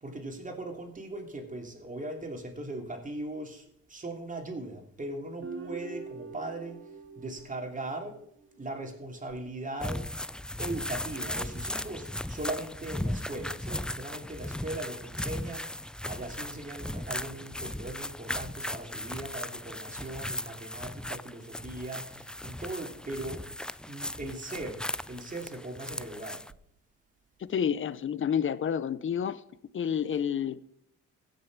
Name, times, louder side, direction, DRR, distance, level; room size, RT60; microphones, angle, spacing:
voice 1, 0.0-6.8 7.2-8.2 8.6-10.1 10.6-15.7 16.1-23.4 23.8-26.4, right 2 dB, 25° right, 2.9 m, -39 dB
Guitar, 5.4-8.7, right 4 dB, 40° right, 2.6 m, -44 dB
sound 1, 9.8-26.5, left 1 dB, 5° left, 0.3 m, -37 dB
voice 2, 27.5-29.4 29.7-30.6, left 8 dB, 40° left, 0.8 m, -29 dB
15.5 x 6.4 x 6.1 m
cardioid pair, 90°, 30 cm